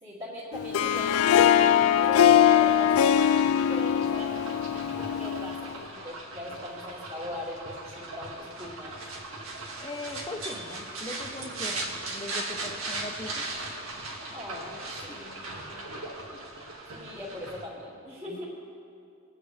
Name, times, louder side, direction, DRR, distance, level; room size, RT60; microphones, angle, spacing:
voice 1, 0.0-3.2 3.6-9.0 14.3-15.8 16.9-18.5, left 1 dB, 25° right, -11 dB, 2.2 m, -40 dB
Harp, 0.5-5.7, left 9 dB, 80° left, 0.3 m, -22 dB
sound 1, 0.8-17.6, right 2 dB, 80° right, 1.8 m, -39 dB
voice 2, 9.8-13.4 18.3-18.4, left 2 dB, 20° left, 4 dB, 0.8 m, -40 dB
22.0 x 9.1 x 3.3 m, 2.6 s
head